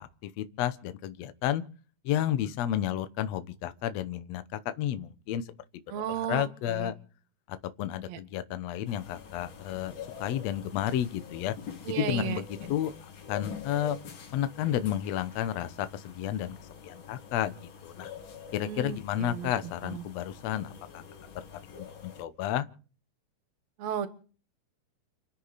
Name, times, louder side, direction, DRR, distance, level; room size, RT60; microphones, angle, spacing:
voice 1, 0.0-1.6 2.0-5.5 5.9-6.9 7.5-11.5 11.9-12.4 12.7-12.9 13.3-14.0 14.3-16.5 16.8-17.5 17.8-18.1 18.5-21.0 21.3-21.4 21.7-22.7, left 11 dB, 90° left, 1.4 m, -31 dB
voice 2, 5.9-6.9 8.1-8.2 11.9-12.4 18.6-20.0 23.8-24.1, right 9 dB, 60° right, 2.0 m, -35 dB
sound 1, 8.9-22.3, left 7 dB, 65° left, 4.1 m, -46 dB
29.5 x 9.9 x 4.1 m
omnidirectional pair, 4.4 m